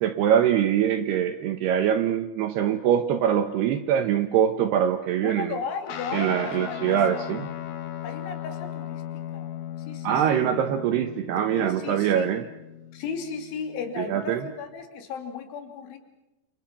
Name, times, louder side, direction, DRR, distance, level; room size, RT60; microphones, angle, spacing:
voice 1, 0.0-5.6 6.1-7.5 10.0-12.4 14.0-14.4, right 9 dB, 75° right, 9 dB, 2.7 m, -23 dB
voice 2, 5.2-7.3 8.0-9.5 9.8-10.4 11.5-12.3 12.9-16.0, left 5 dB, 75° left, 5 dB, 5.1 m, -35 dB
Guitar, 5.9-14.6, left 11 dB, 55° left, 2.1 m, -38 dB
29.5 x 28.0 x 6.0 m, 0.97 s
omnidirectional pair, 5.5 m